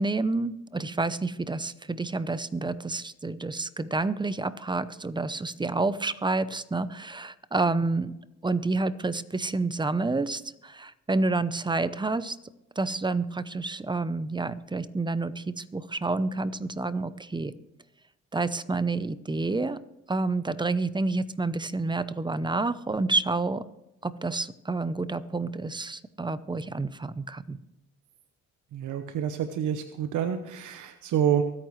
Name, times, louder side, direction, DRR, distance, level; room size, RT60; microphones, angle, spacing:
voice 1, 0.0-8.1 8.4-12.4 12.8-17.5 18.3-19.8 20.1-23.6 24.0-27.6, right 3 dB, 15° right, 15 dB, 0.7 m, -29 dB
voice 2, 28.7-31.4, right 9 dB, 80° right, 8 dB, 1.0 m, -28 dB
23.5 x 9.0 x 3.2 m, 0.93 s
cardioid pair, 90°, 30 cm